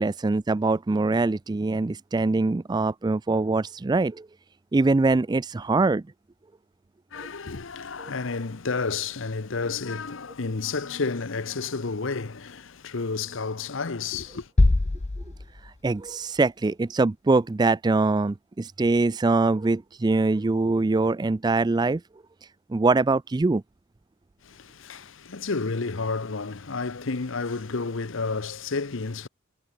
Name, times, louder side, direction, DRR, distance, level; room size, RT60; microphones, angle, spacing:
voice 1, 0.0-4.3 4.7-6.0 15.8-22.0 22.7-23.6, right 3 dB, 20° right, 0.3 m, -23 dB
voice 2, 7.1-14.5 24.4-29.3, left 4 dB, 65° left, 0.9 m, -31 dB
sound 1, 14.6-16.4, left 2 dB, 30° left, 0.6 m, -23 dB
head